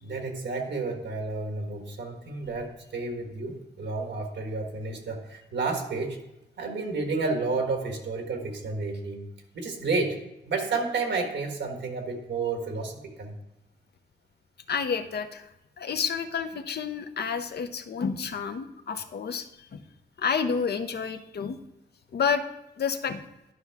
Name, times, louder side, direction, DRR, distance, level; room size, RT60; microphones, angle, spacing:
voice 1, 0.0-6.2 6.6-9.2 9.5-10.2 10.5-13.3, right 3 dB, 90° right, 3 dB, 1.4 m, -31 dB
voice 2, 14.7-15.5 15.8-19.8 20.2-21.6 22.1-22.4 22.8-23.2, left 6 dB, 65° left, 8 dB, 0.7 m, -29 dB
11.5 x 5.5 x 3.5 m, 0.91 s
wide cardioid pair, 100°, 18 cm